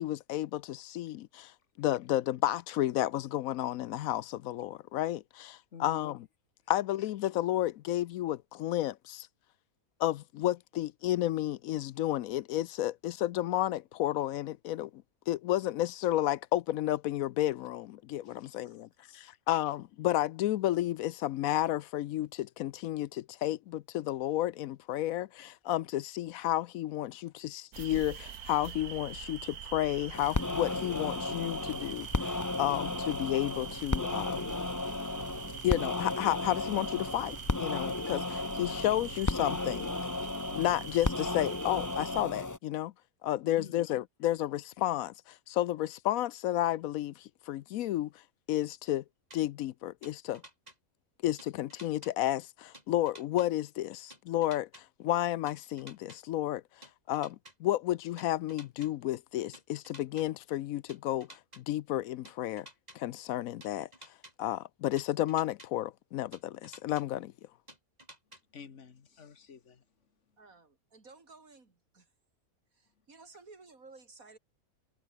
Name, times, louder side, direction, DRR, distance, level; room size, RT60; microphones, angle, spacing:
voice 1, 0.0-6.3 6.7-9.3 10.0-34.6 35.6-39.9 40.5-42.9 43.2-48.1 48.5-49.0 49.3-50.4 51.2-56.6 57.1-62.7 62.9-63.9 64.4-67.3, left 14 dB, 75° left, 1.0 m, -32 dB
voice 2, 5.7-6.1 18.3-18.8 19.1-19.3 43.5-43.9 68.5-69.8, left 6 dB, 55° left, 1.8 m, -50 dB
sound 1, 27.7-42.2, right 8 dB, 85° right, 1.7 m, -44 dB
sound 2, 30.1-42.6, left 3 dB, 15° left, 0.6 m, -34 dB
sound 3, 49.3-49.4 50.0-50.8 51.4-52.1 52.7-53.5 54.1-54.8 55.5-56.2 56.8-57.5 58.2-58.9 59.5-60.3 60.9-61.6 62.3-63.0 63.6-64.3 65.0-65.7 66.3-67.0 67.7-68.4, right 1 dB, 25° right, 7.0 m, -52 dB
voice 3, 70.4-72.1 72.7-74.4, right 3 dB, 65° right, 3.7 m, -55 dB
omnidirectional pair, 1.6 m